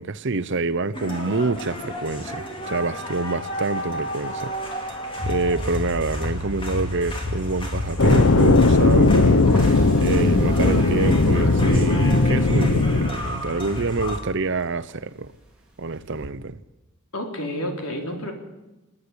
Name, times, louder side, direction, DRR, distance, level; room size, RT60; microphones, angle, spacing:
voice 1, 0.0-4.5 5.2-15.3 15.8-16.6, right 3 dB, 55° right, 0.8 m, -27 dB
sound 1, 0.9-14.2, left 1 dB, 25° left, 3.0 m, -30 dB
sound 2, 7.4-14.2 14.5-16.3, left 1 dB, 5° right, 3.8 m, -35 dB
sound 3, 8.0-13.1, left 3 dB, 60° left, 0.8 m, -17 dB
voice 2, 17.1-18.3, left 1 dB, 80° left, 4.0 m, -30 dB
27.0 x 9.8 x 9.8 m
head